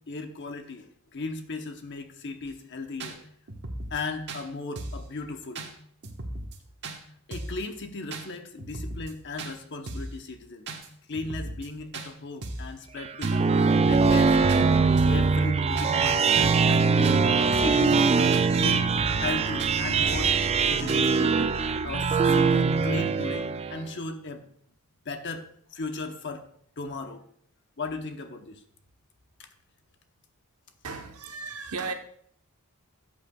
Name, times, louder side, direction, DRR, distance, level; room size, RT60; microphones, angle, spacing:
voice 1, 0.0-3.2 3.9-5.6 7.3-10.6 11.1-13.5 13.9-17.2 17.5-18.9 19.2-20.4 20.6-21.5 21.8-24.5 25.0-26.5 26.8-27.2 27.8-28.6 29.4-29.5, left 3 dB, 55° left, 1.0 m, -36 dB
sound 1, 2.4-2.5 3.0-3.1 3.5-4.0 4.3-4.4 4.8-5.1 5.6-5.7 6.0-6.6 6.8-7.0 7.3-7.6 8.1-8.3 8.6-9.1 9.4-9.5 9.9-10.2 10.7-10.9 11.1-11.7 11.9-12.1 12.4-12.7 13.2-13.4 13.7-14.2 14.5-14.6 15.0-15.3 15.8-15.9 16.2-16.8 17.0-17.2 17.5-17.8 18.3-18.5 18.8-19.3 19.6-19.7 20.1-20.4 20.9-21.1, right 2 dB, 55° right, 1.3 m, -37 dB
sound 2, 13.0-23.8, right 4 dB, 30° right, 0.3 m, -22 dB
voice 2, 30.8-31.9, right 4 dB, 85° right, 1.1 m, -35 dB
13.5 x 8.3 x 2.3 m
head